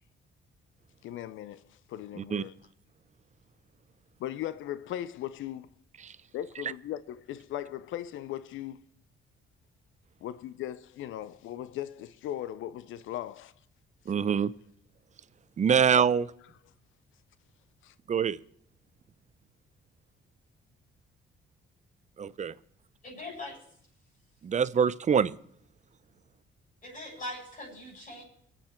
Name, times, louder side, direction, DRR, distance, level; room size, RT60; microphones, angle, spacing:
voice 1, 1.0-2.6 4.2-5.7 6.3-8.8 10.2-13.5 15.9-16.0 17.8-17.9, left 12 dB, 80° left, 0.5 m, -38 dB
voice 2, 14.1-14.5 15.6-16.2 18.1-18.4 22.2-22.5 24.4-25.4, right 7 dB, 35° right, 0.5 m, -25 dB
voice 3, 23.0-23.6 26.8-28.2, left 1 dB, 40° left, 7.0 m, -41 dB
22.5 x 7.9 x 4.4 m
cardioid pair, 90°, 20 cm